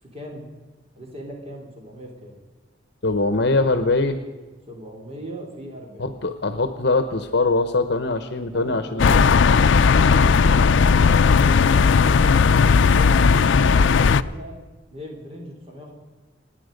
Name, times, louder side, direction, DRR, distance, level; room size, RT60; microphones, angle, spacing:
voice 1, 0.0-0.5 0.9-2.4 4.7-6.2 8.5-10.3 10.6-14.6 14.9-15.9, equal, 30° right, -1 dB, 3.3 m, -38 dB
voice 2, 3.0-4.2 6.0-9.2, left 3 dB, 65° left, 10 dB, 1.0 m, -22 dB
sound 1, 9.0-14.2, left 5 dB, 80° left, 0.4 m, -16 dB
27.5 x 10.0 x 5.2 m, 1.3 s
head